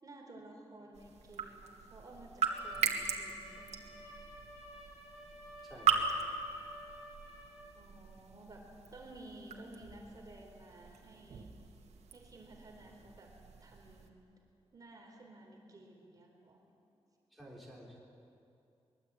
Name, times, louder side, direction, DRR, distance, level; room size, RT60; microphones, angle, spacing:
voice 1, 0.0-3.9 7.7-11.5 12.1-13.3 13.6-14.1 14.7-16.6, right 1 dB, 35° right, 1 dB, 3.9 m, -54 dB
sound 1, 0.9-14.1, right 6 dB, 90° right, 2.2 m, -39 dB
Trumpet, 2.5-7.8, equal, 85° left, 6.8 m, -53 dB
voice 2, 5.6-6.1 17.3-18.0, equal, ahead, -4 dB, 3.8 m, -51 dB
23.5 x 21.5 x 8.8 m, 2.6 s
wide cardioid pair, 170°, 11 cm